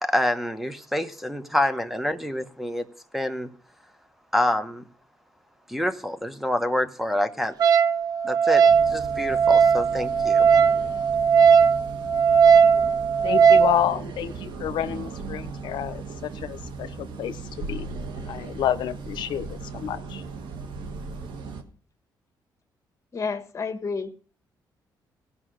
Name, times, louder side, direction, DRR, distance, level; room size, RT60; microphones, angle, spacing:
voice 1, 0.0-2.9 3.1-3.5 4.3-4.8 5.7-7.5 8.2-10.5, left 1 dB, 5° right, 10 dB, 0.9 m, -27 dB
Wind instrument woodwind instrument, 7.6-13.8, right 6 dB, 55° right, 0.5 m, -18 dB
sound 1, 8.6-21.6, right 4 dB, 80° right, 1.4 m, -37 dB
voice 2, 13.2-17.9 18.2-20.2, left 11 dB, 80° left, 11 dB, 0.7 m, -29 dB
voice 3, 23.1-24.1, left 5 dB, 40° left, 6 dB, 1.4 m, -30 dB
16.5 x 5.6 x 6.3 m, 0.41 s
cardioid pair, 95°, 8 cm